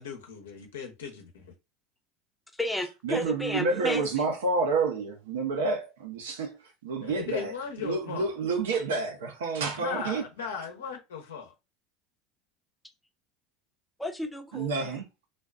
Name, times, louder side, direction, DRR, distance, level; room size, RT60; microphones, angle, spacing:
voice 1, 0.0-1.5 7.0-8.3 9.8-11.5, left 6 dB, 85° left, 0.8 m, -37 dB
voice 2, 2.5-4.3 14.0-15.0, left 1 dB, 5° left, 0.7 m, -33 dB
voice 3, 3.0-7.5 7.8-10.2 14.5-15.1, right 4 dB, 80° right, 0.7 m, -29 dB
2.4 x 2.4 x 2.3 m
hypercardioid pair, 85°, 0 cm